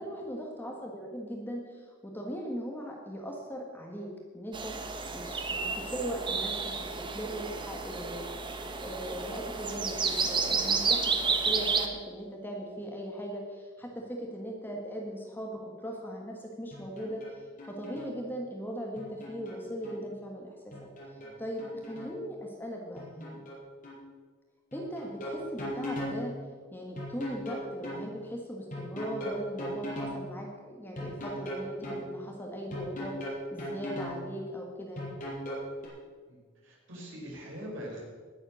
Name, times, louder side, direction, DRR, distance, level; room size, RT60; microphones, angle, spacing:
voice 1, 0.0-8.3 8.8-20.7 21.4-23.4 24.7-26.4 26.7-35.2, equal, 10° left, 0 dB, 1.7 m, -39 dB
sound 1, 4.5-11.9, right 4 dB, 25° right, 1.2 m, -31 dB
sound 2, 16.7-17.3 17.6-18.1 19.0-20.0 20.7-22.1 23.0-23.6 23.8-24.0 24.7-26.2 27.0-28.0 28.7-30.2 31.0-32.0 32.7-34.2 35.0-35.9, equal, 45° left, 5.7 m, -38 dB
voice 2, 36.3-38.0, equal, 75° right, -3 dB, 5.4 m, -43 dB
19.5 x 7.9 x 6.4 m, 1.5 s
head